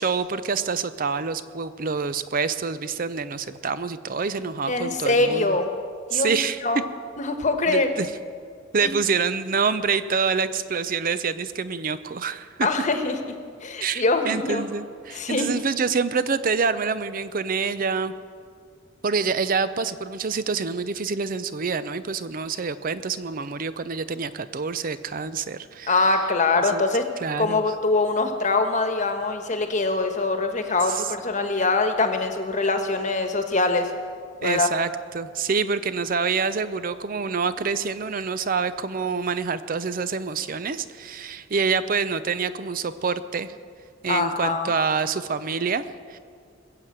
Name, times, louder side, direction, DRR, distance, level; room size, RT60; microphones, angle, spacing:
voice 1, 0.0-5.6 6.1-6.6 7.7-8.1 8.7-12.7 13.8-18.1 19.0-26.1 26.6-26.8 27.2-27.6 30.9-31.1 34.4-43.5 44.0-45.8 46.1-46.2, right 5 dB, 45° right, 13 dB, 0.5 m, -26 dB
voice 2, 4.7-5.7 6.1-6.4 6.6-6.8 7.2-7.9 8.8-8.9 12.6-13.2 13.6-14.6 15.1-15.5 25.9-27.1 27.4-33.9 34.4-34.7 44.1-44.7, left 3 dB, 40° left, 6 dB, 1.3 m, -23 dB
21.5 x 7.5 x 7.9 m, 2.1 s
head